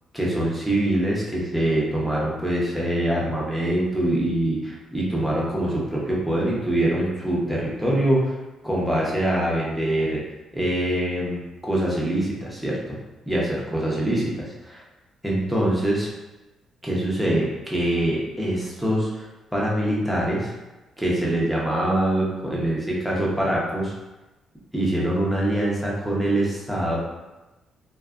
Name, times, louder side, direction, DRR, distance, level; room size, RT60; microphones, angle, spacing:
voice 1, 0.1-8.3 8.6-10.2 10.5-12.8 13.2-14.8 15.2-16.1 16.8-19.3 19.5-20.5 21.0-23.9 24.7-27.0, right 1 dB, ahead, -5 dB, 0.8 m, -24 dB
2.6 x 2.3 x 2.4 m, 1.1 s
cardioid pair, 90°, 0 cm